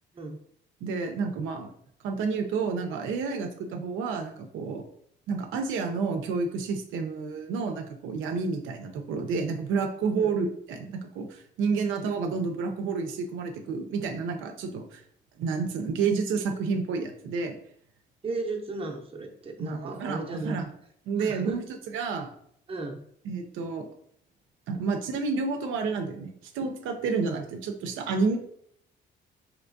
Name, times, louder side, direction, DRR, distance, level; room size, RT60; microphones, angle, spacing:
voice 1, 0.8-1.7 2.0-4.8 5.3-15.0 15.4-17.5 19.6-20.7 21.1-21.7 21.9-22.3 23.2-23.9 24.7-28.4, right 4 dB, 85° right, 4 dB, 0.5 m, -30 dB
voice 2, 18.2-20.6 21.2-21.6 22.7-23.0, right 3 dB, 30° right, 1 dB, 0.6 m, -35 dB
3.3 x 2.9 x 2.6 m, 0.67 s
cardioid pair, 90°, 20 cm